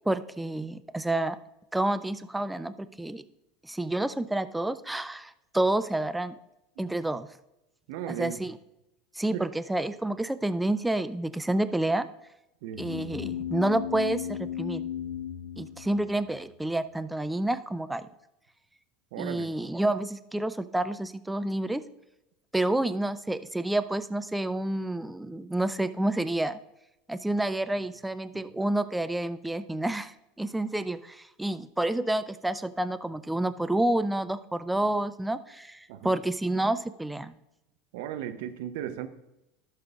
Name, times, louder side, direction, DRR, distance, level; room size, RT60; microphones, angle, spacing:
voice 1, 0.1-1.4 1.7-3.2 3.6-6.4 6.8-7.3 8.1-8.6 9.1-12.1 12.8-14.9 15.6-18.1 19.2-21.8 22.5-26.6 27.1-37.3, right 1 dB, 5° right, 12 dB, 0.4 m, -29 dB
voice 2, 7.9-8.4 9.3-9.5 12.6-12.9 19.1-19.5 35.9-36.1 37.9-39.1, right 10 dB, 60° right, 9 dB, 0.7 m, -36 dB
sound 1, 12.7-16.4, left 10 dB, 45° left, 1.6 m, -35 dB
15.0 x 6.6 x 2.4 m, 0.90 s
figure-of-eight pair, 75°, 0 cm